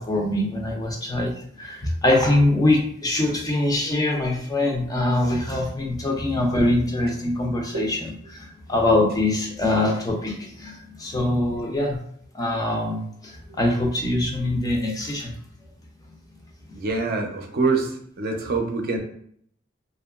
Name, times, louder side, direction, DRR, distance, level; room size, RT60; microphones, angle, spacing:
voice 1, 0.0-1.3 1.6-12.0 12.3-15.3, left 1 dB, 20° left, 0 dB, 0.4 m, -23 dB
voice 2, 16.7-19.0, right 3 dB, 50° right, 3 dB, 0.5 m, -25 dB
2.8 x 2.2 x 2.3 m, 0.65 s
head